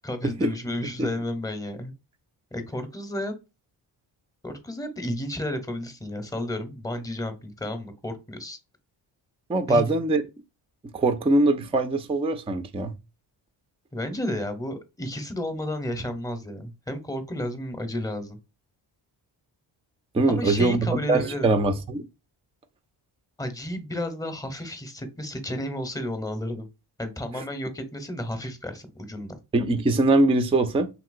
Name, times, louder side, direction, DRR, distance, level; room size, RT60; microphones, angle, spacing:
voice 1, 0.0-1.9 2.5-3.3 4.4-8.6 9.7-9.8 13.9-18.4 20.3-21.5 23.4-26.7 27.0-29.4, left 1 dB, 5° left, 0.8 m, -32 dB
voice 2, 9.5-10.2 10.9-12.9 20.1-22.1 27.3-27.4 29.5-30.9, right 2 dB, 15° right, 0.4 m, -22 dB
2.9 x 2.9 x 2.5 m
cardioid pair, 60°, 50 cm